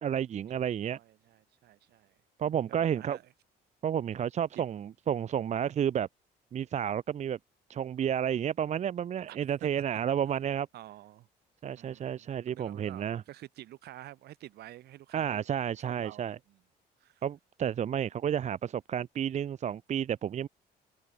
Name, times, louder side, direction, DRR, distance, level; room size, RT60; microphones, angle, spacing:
voice 1, 0.0-1.0 2.4-3.2 3.8-6.1 6.5-7.4 7.7-10.7 11.6-13.2 15.1-16.4 17.2-20.5, right 9 dB, 45° right, 0.8 m, -31 dB
voice 2, 0.6-2.2 2.7-3.3 4.5-4.7 9.3-9.4 10.7-11.3 11.8-15.5 15.8-16.6 17.0-17.2, right 14 dB, 70° right, 7.3 m, -50 dB
cardioid pair, 110°, 17 cm